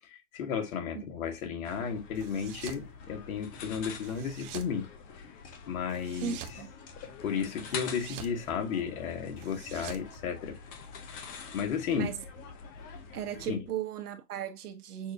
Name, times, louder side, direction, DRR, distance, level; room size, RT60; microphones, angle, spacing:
voice 1, 0.1-4.9 5.7-6.4 7.0-10.6 11.5-12.1 13.5-13.7, left 7 dB, 65° left, 1.7 m, -33 dB
sound 1, 1.6-13.5, left 5 dB, 20° left, 0.5 m, -46 dB
sound 2, 2.1-2.9 4.0-4.8 5.9-6.6 7.7-8.4 9.4-10.9, right 9 dB, 30° right, 0.6 m, -46 dB
voice 2, 6.2-6.7 11.9-12.2 13.1-15.1, right 9 dB, 85° right, 1.2 m, -36 dB
6.1 x 2.7 x 2.5 m
hypercardioid pair, 135°, 44 cm